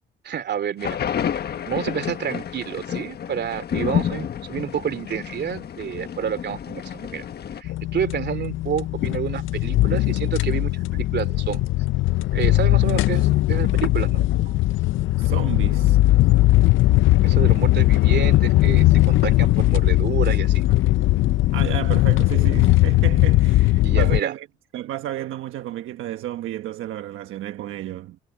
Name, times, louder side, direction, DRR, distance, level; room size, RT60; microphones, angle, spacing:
voice 1, 0.2-1.0 1.6-7.3 7.6-11.7 12.3-14.2 17.2-20.6 23.8-24.3, right 8 dB, 60° right, 2.7 m, -29 dB
sound 1, 0.8-7.6, left 9 dB, 55° left, 1.3 m, -29 dB
sound 2, 7.6-24.2, left 17 dB, 80° left, 0.6 m, -19 dB
voice 2, 15.2-16.0 21.5-24.5 24.7-28.2, right 13 dB, 85° right, 1.3 m, -32 dB
cardioid pair, 90°, 20 cm